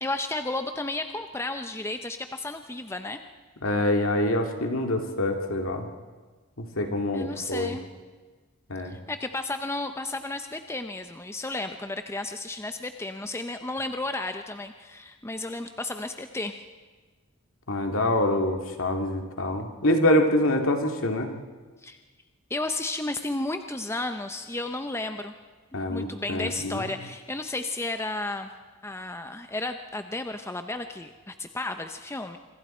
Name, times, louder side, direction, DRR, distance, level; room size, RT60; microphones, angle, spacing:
voice 1, 0.0-3.2 7.1-7.8 8.9-16.6 21.8-22.0 22.5-25.4 25.7-28.5 28.8-32.4, left 2 dB, 10° left, 7 dB, 0.7 m, -33 dB
voice 2, 3.6-5.9 6.6-7.7 8.7-9.0 17.7-21.3 25.7-26.9, left 1 dB, 65° left, 4 dB, 2.3 m, -25 dB
26.0 x 25.5 x 4.4 m, 1.4 s
head